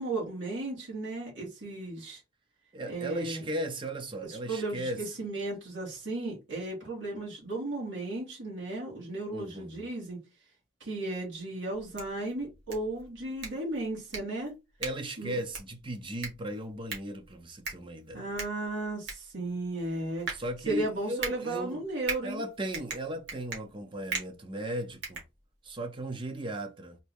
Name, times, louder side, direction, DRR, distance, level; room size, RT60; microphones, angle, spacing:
voice 1, 0.0-2.2 2.9-3.4 4.2-10.2 10.8-14.5 15.2-15.4 18.1-20.3 20.7-22.4, right 2 dB, 80° right, 2.3 m, -35 dB
voice 2, 2.7-5.0 9.3-9.8 14.8-18.3 20.3-21.8 22.2-25.2 25.6-27.0, right 1 dB, 25° right, 0.7 m, -36 dB
sound 1, 11.7-25.9, right 4 dB, 60° right, 2.0 m, -41 dB
4.2 x 2.7 x 3.5 m
head